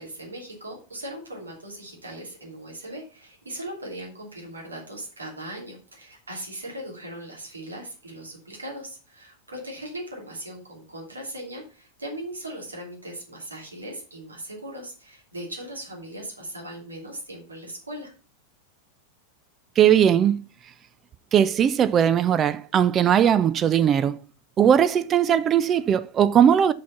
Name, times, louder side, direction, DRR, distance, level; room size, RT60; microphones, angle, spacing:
voice 1, 0.0-18.1, right 1 dB, 80° right, 2.8 m, -38 dB
voice 2, 19.8-20.4 21.3-24.2 24.6-26.7, right 9 dB, 25° right, 0.4 m, -19 dB
6.2 x 5.7 x 5.7 m
figure-of-eight pair, 90°, 0 cm